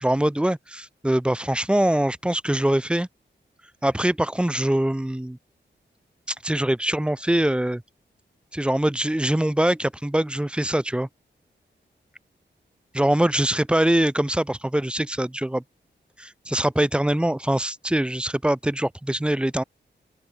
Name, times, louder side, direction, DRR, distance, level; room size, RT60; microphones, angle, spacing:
voice 1, 0.0-3.1 3.8-5.4 6.3-7.8 8.5-11.1 12.9-15.6 16.2-19.6, right 1 dB, 5° right, 0.5 m, -23 dB
open air
wide cardioid pair, 115°, 20 cm